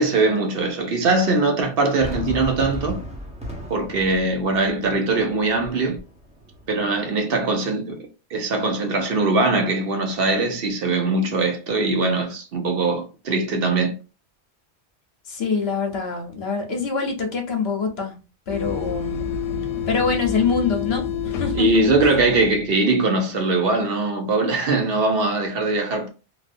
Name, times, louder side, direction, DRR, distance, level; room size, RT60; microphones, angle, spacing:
voice 1, 0.0-3.0 3.7-6.0 6.7-8.0 8.3-13.9 21.5-26.1, right 2 dB, 60° right, 0.8 m, -21 dB
Fireworks, 2.0-7.0, left 1 dB, 5° right, 0.7 m, -36 dB
voice 2, 15.3-18.1 18.5-19.3 19.9-22.1, left 5 dB, 65° left, 1.0 m, -25 dB
sound 1, 18.5-22.8, left 7 dB, 90° left, 0.9 m, -28 dB
3.3 x 2.6 x 2.5 m
omnidirectional pair, 1.2 m